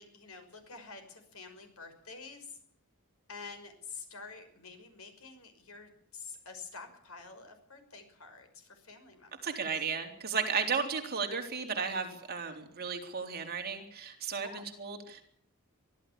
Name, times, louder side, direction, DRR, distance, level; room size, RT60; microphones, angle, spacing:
voice 1, 0.0-2.6 3.3-9.6 14.4-14.6, left 4 dB, 75° left, 7 dB, 5.7 m, -48 dB
voice 2, 9.4-15.2, right 5 dB, 45° right, 4 dB, 3.7 m, -34 dB
24.0 x 14.5 x 8.7 m, 0.66 s
head